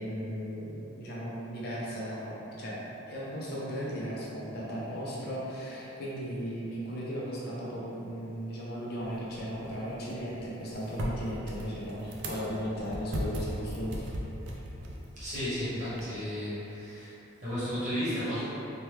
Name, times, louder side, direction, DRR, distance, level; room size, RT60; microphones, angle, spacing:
voice 1, 0.0-2.8 3.1-14.0, equal, 50° left, -6 dB, 0.5 m, -36 dB
sound 1, 9.0-16.0, equal, 60° right, 0.4 m, -39 dB
voice 2, 15.2-17.1 17.4-18.4, equal, 35° right, -11 dB, 1.0 m, -33 dB
3.0 x 2.2 x 3.1 m, 3.0 s
head